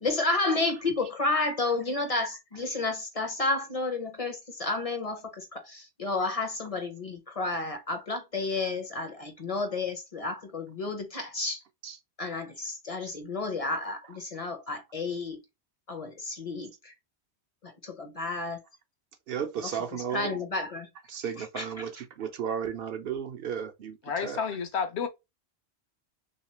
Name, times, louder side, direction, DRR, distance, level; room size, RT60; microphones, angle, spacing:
voice 1, 0.0-11.6 12.2-15.4 15.9-16.9 17.6-18.6 20.1-20.9 21.6-21.7, left 3 dB, 40° left, 0.6 m, -31 dB
voice 2, 19.3-20.4 21.1-24.6, right 7 dB, 65° right, 0.7 m, -35 dB
voice 3, 24.1-25.1, left 6 dB, 70° left, 0.9 m, -30 dB
3.1 x 2.9 x 3.0 m
omnidirectional pair, 1.2 m